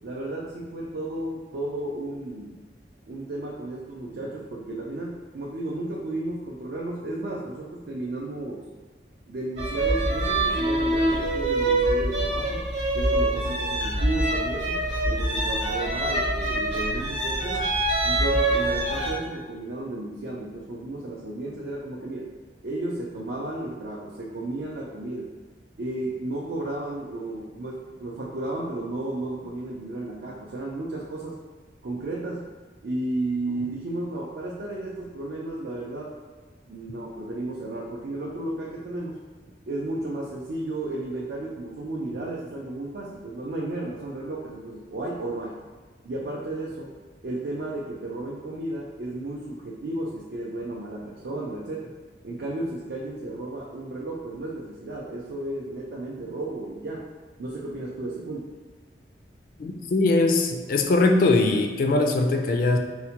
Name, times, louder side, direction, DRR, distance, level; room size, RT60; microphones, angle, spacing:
voice 1, 0.0-2.6 3.1-8.7 9.3-12.7 12.9-17.7 18.0-22.3 22.6-25.3 25.8-31.4 31.8-32.4 32.8-36.2 36.7-39.2 39.7-45.5 46.0-46.9 47.2-51.9 52.2-57.1 57.4-58.6, right 2 dB, 65° right, -4 dB, 0.4 m, -33 dB
sound 1, 9.6-19.1, right 1 dB, 85° right, 0.9 m, -25 dB
voice 2, 59.6-62.8, left 2 dB, 50° left, 4 dB, 0.3 m, -21 dB
4.4 x 2.1 x 2.8 m, 1.4 s
head